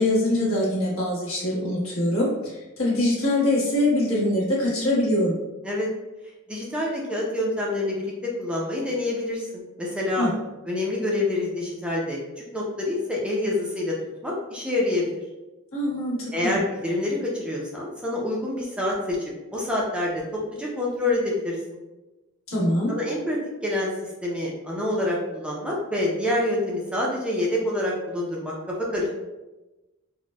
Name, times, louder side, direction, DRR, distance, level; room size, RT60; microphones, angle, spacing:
voice 1, 0.0-5.4 10.2-10.3 15.7-16.6 22.5-22.9, left 1 dB, 75° left, -6 dB, 1.2 m, -23 dB
voice 2, 6.5-9.5 9.8-10.3 10.7-14.0 14.2-15.1 16.3-19.2 19.5-21.8 22.9-29.1, left 1 dB, 5° right, -4 dB, 0.4 m, -27 dB
4.1 x 2.1 x 2.2 m, 1.1 s
head